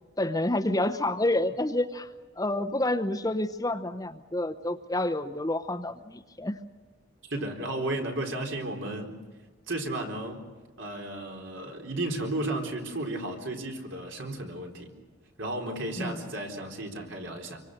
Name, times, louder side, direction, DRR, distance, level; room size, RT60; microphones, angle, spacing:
voice 1, 0.2-2.1 2.4-6.6 7.4-7.5 16.0-16.3, left 1 dB, 15° left, 8 dB, 0.8 m, -29 dB
voice 2, 7.3-9.2 9.7-10.5 10.8-14.9 15.4-17.6, right 1 dB, 65° right, 2 dB, 4.0 m, -33 dB
26.5 x 24.5 x 6.5 m, 1.3 s
head